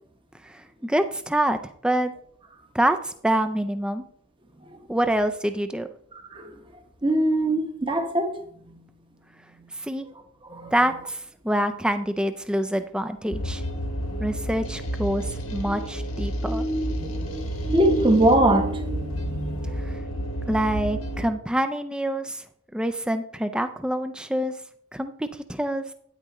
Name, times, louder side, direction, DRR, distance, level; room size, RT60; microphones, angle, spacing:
voice 1, 0.4-2.1 2.7-4.0 4.9-5.9 9.8-10.1 10.7-13.6 14.2-16.6 19.9-20.0 20.5-22.4 22.7-24.5 24.9-25.8, right 1 dB, 5° right, 0.4 m, -26 dB
voice 2, 6.1-6.6 7.0-8.8 10.4-10.7 15.7-15.8 16.4-19.9, right 1 dB, 25° right, 0.9 m, -24 dB
sound 1, 13.3-21.3, equal, 85° left, 1.4 m, -30 dB
9.3 x 9.0 x 3.0 m
head